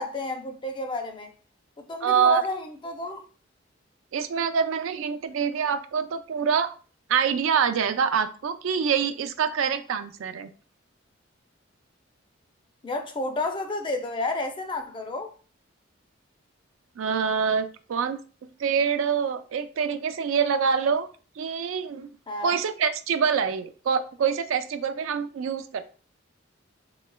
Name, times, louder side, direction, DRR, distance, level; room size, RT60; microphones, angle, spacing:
voice 1, 0.0-1.3 1.8-3.2 12.8-15.3 22.3-22.6, left 2 dB, 25° left, 0.4 m, -31 dB
voice 2, 2.0-2.4 4.1-6.8 7.1-10.5 17.0-21.1 21.4-22.1 22.4-25.9, right 6 dB, 90° right, 0.4 m, -25 dB
3.1 x 3.0 x 2.2 m
head